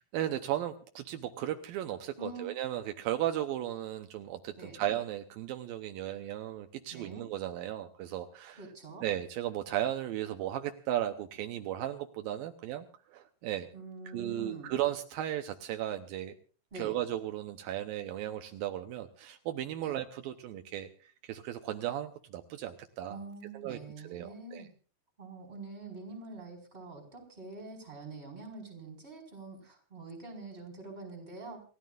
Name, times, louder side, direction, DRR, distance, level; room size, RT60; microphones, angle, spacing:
voice 1, 0.1-8.6 9.0-12.9 13.1-13.7 14.1-16.3 16.8-23.2 23.5-23.8 24.0-24.7, right 12 dB, 80° right, 6 dB, 2.1 m, -35 dB
voice 2, 2.2-2.5 4.6-4.8 6.9-7.2 8.6-9.0 13.7-14.8 16.7-17.0 19.8-20.0 23.1-24.7 25.2-31.6, right 3 dB, 15° right, 4 dB, 4.7 m, -45 dB
28.5 x 15.0 x 2.5 m, 0.37 s
omnidirectional pair, 5.2 m